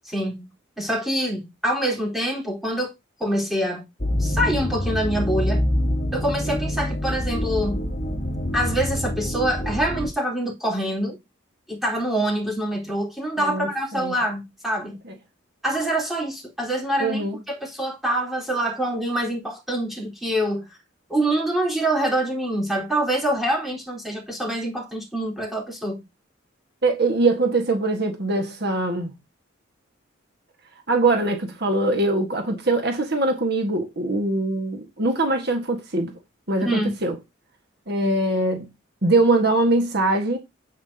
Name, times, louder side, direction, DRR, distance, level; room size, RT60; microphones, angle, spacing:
voice 1, 0.1-0.5 0.8-2.9 3.2-3.8 4.2-5.6 6.1-7.8 8.5-11.2 11.7-15.0 15.6-20.7 21.1-26.0 36.6-37.0, right 1 dB, ahead, 4.2 m, -25 dB
sound 1, 4.0-10.1, equal, 40° left, 3.2 m, -25 dB
voice 2, 13.4-14.2 15.0-15.1 17.0-17.4 26.8-29.1 30.9-36.1 36.5-37.2 37.9-38.7 39.0-40.4, right 2 dB, 55° right, 1.7 m, -22 dB
9.5 x 8.6 x 2.9 m
head